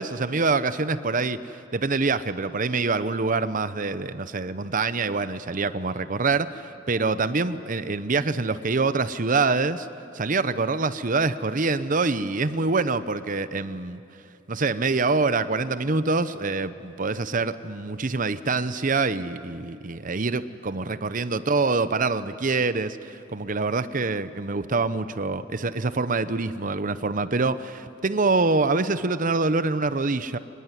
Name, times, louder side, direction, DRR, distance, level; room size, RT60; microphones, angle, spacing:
voice 1, 0.0-9.9 10.1-14.0 14.5-30.4, right 3 dB, 45° right, 13 dB, 0.8 m, -25 dB
25.0 x 20.0 x 9.8 m, 2.7 s
head